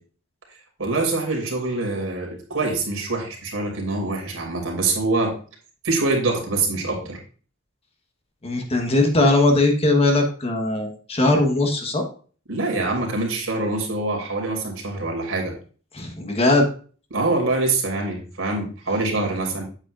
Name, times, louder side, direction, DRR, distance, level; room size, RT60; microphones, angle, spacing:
voice 1, 0.8-5.4 5.8-7.2 12.5-15.5 17.1-19.6, right 3 dB, 75° right, 0 dB, 3.0 m, -24 dB
voice 2, 8.4-12.0 15.9-16.7, left 2 dB, 30° left, 4 dB, 1.3 m, -19 dB
8.8 x 8.1 x 2.6 m, 0.39 s
head